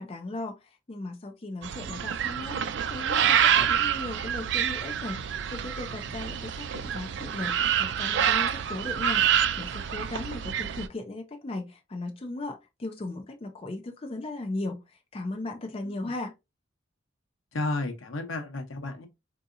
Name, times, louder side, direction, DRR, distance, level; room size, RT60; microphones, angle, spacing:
voice 1, 0.0-16.3, left 2 dB, 30° left, 0.4 m, -37 dB
sound 1, 1.6-10.9, right 9 dB, 60° right, 0.3 m, -27 dB
voice 2, 17.5-19.1, left 2 dB, 85° left, 0.9 m, -32 dB
3.7 x 2.7 x 2.5 m
head